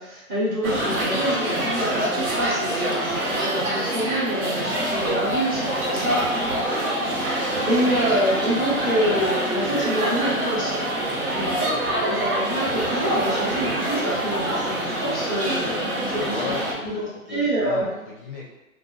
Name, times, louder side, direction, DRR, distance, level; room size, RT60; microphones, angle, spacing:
voice 1, 0.0-6.9 7.7-10.9 11.3-16.5 16.8-17.0 17.3-17.9, equal, 25° right, -7 dB, 0.8 m, -26 dB
sound 1, 0.6-16.7, right 1 dB, 85° right, 1.0 m, -25 dB
voice 2, 11.5-11.8 16.2-18.5, left 4 dB, 40° left, -4 dB, 0.4 m, -36 dB
2.5 x 2.3 x 2.3 m, 1.0 s
hypercardioid pair, 145°, 43 cm